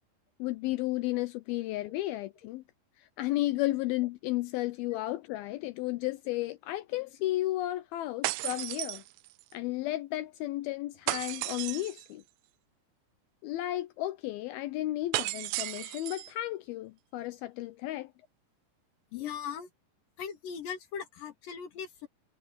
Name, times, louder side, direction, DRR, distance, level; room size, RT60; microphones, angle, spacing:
voice 1, 0.4-2.6 3.0-9.0 9.5-12.2 13.4-18.1, left 16 dB, 80° left, 2.3 m, -33 dB
sound 1, 8.2-9.5 11.1-12.1 15.1-16.3, right 21 dB, 85° right, 2.1 m, -34 dB
voice 2, 19.1-19.7 20.2-22.1, left 7 dB, 60° left, 3.6 m, -39 dB
omnidirectional pair, 4.8 m